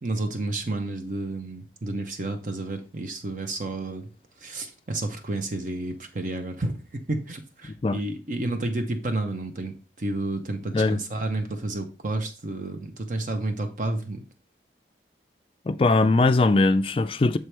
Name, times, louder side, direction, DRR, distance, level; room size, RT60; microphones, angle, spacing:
voice 1, 0.0-4.1 4.4-14.2, right 2 dB, 45° right, 0.7 m, -31 dB
voice 2, 15.7-17.4, left 3 dB, 30° left, 0.3 m, -20 dB
6.6 x 4.6 x 3.3 m
head